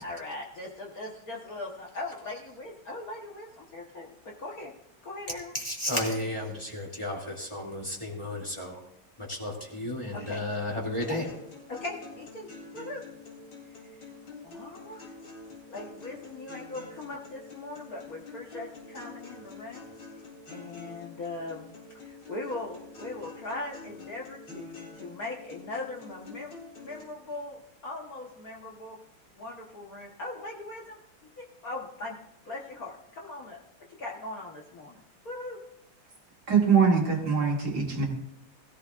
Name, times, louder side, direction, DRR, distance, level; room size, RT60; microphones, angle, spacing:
voice 1, 0.0-4.7 5.0-5.5 10.1-10.4 11.7-13.0 13.7-14.1 14.4-15.1 15.7-19.9 20.5-21.7 22.0-26.5 26.8-29.0 29.4-31.0 31.4-32.1 32.4-33.6 33.9-35.6, left 2 dB, 45° left, -2 dB, 1.6 m, -40 dB
voice 2, 5.5-8.8 9.2-11.3, left 1 dB, 15° left, -2 dB, 2.6 m, -33 dB
sound 1, 11.0-27.0, left 3 dB, 70° left, 4.1 m, -47 dB
voice 3, 36.5-38.1, right 6 dB, 50° right, -1 dB, 2.2 m, -23 dB
21.0 x 14.5 x 2.5 m, 0.82 s
omnidirectional pair, 2.4 m